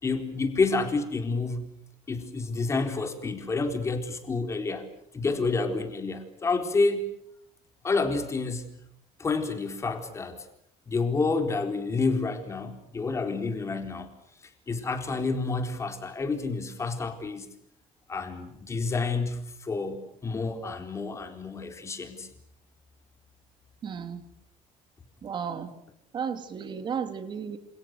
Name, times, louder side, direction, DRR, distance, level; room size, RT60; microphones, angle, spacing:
voice 1, 0.0-1.7 2.1-4.8 5.1-7.0 7.8-8.7 9.2-10.4 10.9-14.1 14.7-17.5 18.1-22.3, left 3 dB, 20° left, 6 dB, 4.1 m, -29 dB
voice 2, 23.8-24.2 25.2-25.8 26.1-27.6, right 7 dB, 35° right, 9 dB, 3.1 m, -33 dB
29.5 x 28.0 x 6.7 m, 0.74 s
cardioid pair, 175°, 14 cm